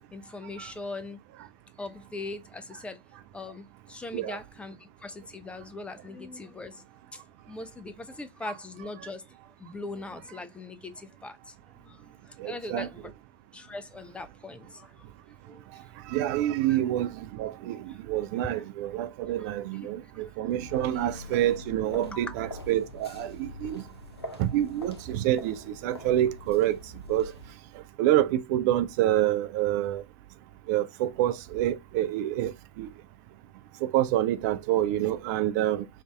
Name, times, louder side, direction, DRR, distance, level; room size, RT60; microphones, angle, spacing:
voice 1, 0.1-1.2 1.8-3.0 3.3-6.8 7.1-7.2 7.5-9.2 9.6-13.1 13.5-15.1 15.5-15.7 16.1-16.2 16.7-16.8 17.9-18.0 19.4-19.9 20.9-21.0 22.1-22.2, left 2 dB, 10° left, 0.6 m, -41 dB
voice 2, 12.4-12.9 16.1-23.8 24.4-26.8 27.1-27.3 28.0-30.0 30.7-32.9 33.8-35.9, right 13 dB, 45° right, 0.5 m, -27 dB
sound 1, 20.5-27.5, left 2 dB, 85° left, 0.8 m, -44 dB
4.9 x 2.7 x 3.3 m
figure-of-eight pair, 90°, 13 cm